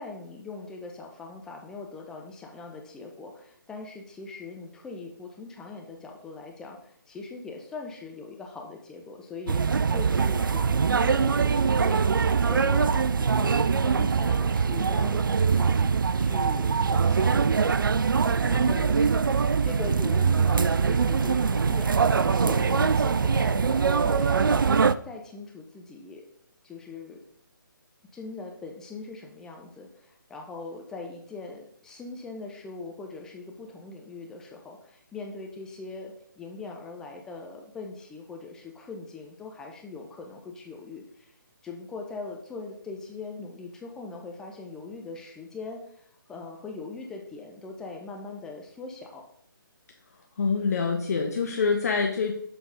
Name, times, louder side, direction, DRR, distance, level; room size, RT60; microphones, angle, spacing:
voice 1, 0.0-12.1 12.4-15.8 16.1-17.7 18.4-19.2 19.6-26.3 26.6-27.2 28.1-41.3 41.6-49.3, left 3 dB, 5° left, 1 dB, 0.4 m, -41 dB
sound 1, 9.5-24.9, right 5 dB, 70° right, 0.4 m, -23 dB
voice 2, 50.4-52.3, left 5 dB, 45° left, 2 dB, 0.8 m, -26 dB
7.0 x 4.0 x 5.1 m, 0.67 s
figure-of-eight pair, 145°, 12 cm